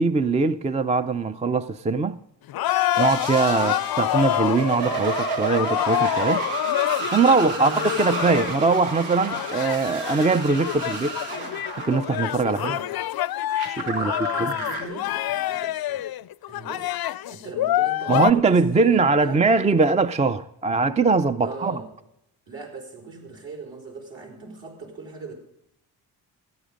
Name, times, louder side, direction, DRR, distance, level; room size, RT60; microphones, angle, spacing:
voice 1, 0.0-2.2 3.0-6.4 7.1-11.1 11.8-12.7 13.7-14.1 14.4-14.5 18.1-21.8, right 4 dB, 15° right, 0.4 m, -21 dB
sound 1, 2.5-18.3, left 14 dB, 50° left, 0.5 m, -27 dB
sound 2, 2.9-12.8 13.4-14.8, right 3 dB, 85° right, 1.9 m, -31 dB
voice 2, 3.5-3.9 7.5-8.1 12.4-12.9 13.9-16.1 16.5-17.0 17.3-19.4 21.4-21.9 22.5-25.3, right 3 dB, 60° right, 4.7 m, -39 dB
14.0 x 9.4 x 5.1 m
supercardioid pair, 60°, 49 cm